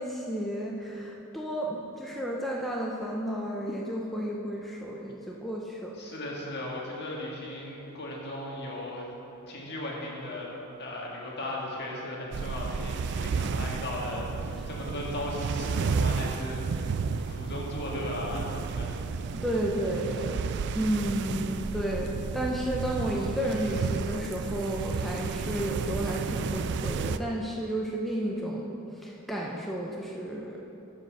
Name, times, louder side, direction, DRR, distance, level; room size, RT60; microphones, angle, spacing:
voice 1, 0.0-5.9 19.3-20.4 20.7-28.7 29.0-30.6, right 1 dB, ahead, -4 dB, 0.6 m, -32 dB
voice 2, 6.0-9.1 9.5-19.0, left 1 dB, 50° left, -3 dB, 1.7 m, -37 dB
sound 1, 12.3-27.2, right 5 dB, 50° right, 0.3 m, -32 dB
9.8 x 5.3 x 6.4 m, 3.0 s
head